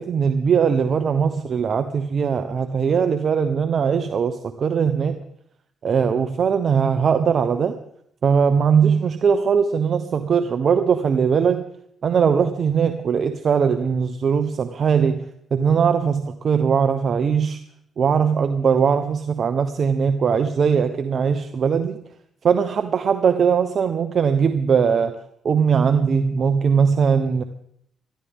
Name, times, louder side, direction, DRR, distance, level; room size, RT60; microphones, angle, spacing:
voice 1, 0.0-5.2 5.8-7.8 8.2-11.6 12.0-17.6 18.0-22.0 22.4-25.2 25.4-27.4, right 6 dB, 50° right, 8 dB, 0.9 m, -20 dB
20.5 x 14.0 x 3.6 m, 0.71 s
cardioid pair, 90°, 0 cm